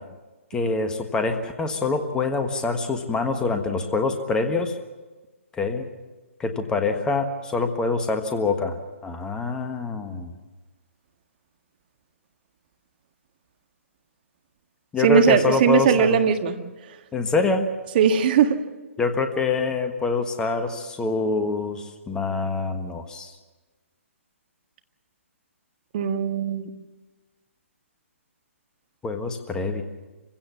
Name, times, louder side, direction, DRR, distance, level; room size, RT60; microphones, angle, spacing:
voice 1, 0.5-4.7 5.6-5.9 6.4-10.3 14.9-16.2 17.1-17.7 19.0-23.3 29.0-29.8, left 3 dB, 10° left, 6 dB, 1.4 m, -25 dB
voice 2, 15.0-16.5 18.0-18.6 25.9-26.7, right 7 dB, 40° right, 7 dB, 1.7 m, -19 dB
26.0 x 16.0 x 7.3 m, 1.2 s
figure-of-eight pair, 135°, 7 cm